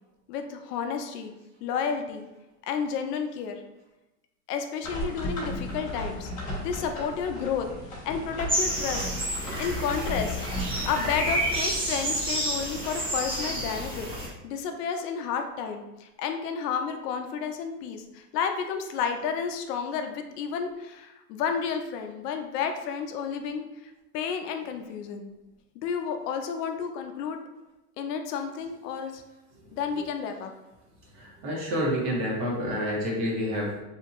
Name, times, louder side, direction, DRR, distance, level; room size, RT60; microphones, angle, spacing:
voice 1, 0.3-1.3 1.6-2.3 2.7-3.6 4.5-6.3 6.6-7.7 8.1-9.1 9.6-10.5 10.9-14.1 14.4-25.3 25.8-27.4 28.0-29.2 29.7-30.5, left 6 dB, 75° left, 6 dB, 0.6 m, -31 dB
sound 1, 4.8-11.6, left 1 dB, 15° left, 1.4 m, -35 dB
sound 2, 8.5-14.3, right 1 dB, 10° right, 0.5 m, -30 dB
voice 2, 31.1-33.8, equal, 40° right, -3 dB, 1.1 m, -29 dB
2.8 x 2.6 x 2.4 m, 0.95 s
supercardioid pair, 130°, 48 cm